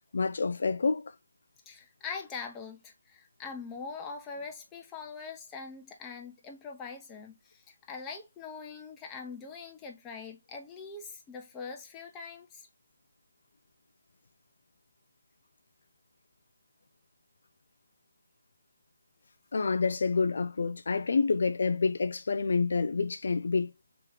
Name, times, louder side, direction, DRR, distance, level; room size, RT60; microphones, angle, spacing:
voice 1, 0.1-1.1 19.5-23.7, left 4 dB, 60° left, 0.3 m, -28 dB
voice 2, 1.7-12.7, left 5 dB, 15° left, 0.7 m, -43 dB
3.5 x 2.9 x 3.2 m
figure-of-eight pair, 155°, 0 cm